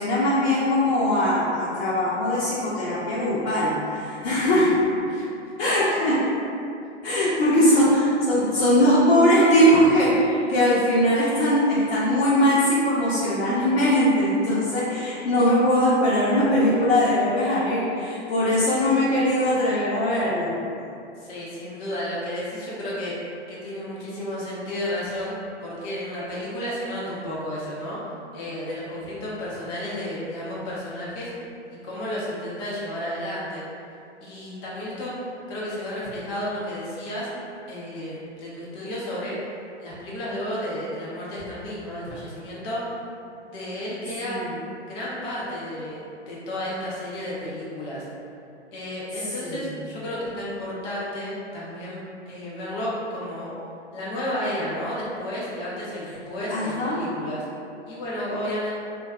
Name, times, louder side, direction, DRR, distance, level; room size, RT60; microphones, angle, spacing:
voice 1, 0.0-4.7 5.6-6.2 7.0-20.5 44.2-44.5 49.2-49.6 56.5-57.0, equal, 60° left, -9 dB, 0.6 m, -21 dB
voice 2, 4.3-4.8 5.1-5.5 21.2-23.1 23.5-28.0 28.3-31.3 31.8-33.6 34.2-35.1 35.5-37.3 37.7-39.4 39.8-42.9 43.5-44.4 44.8-46.0 46.3-48.1 48.7-53.5 53.9-57.4 57.9-58.7, left 1 dB, 25° left, -7 dB, 0.4 m, -32 dB
2.5 x 2.3 x 2.3 m, 2.6 s
hypercardioid pair, 115°, 35 cm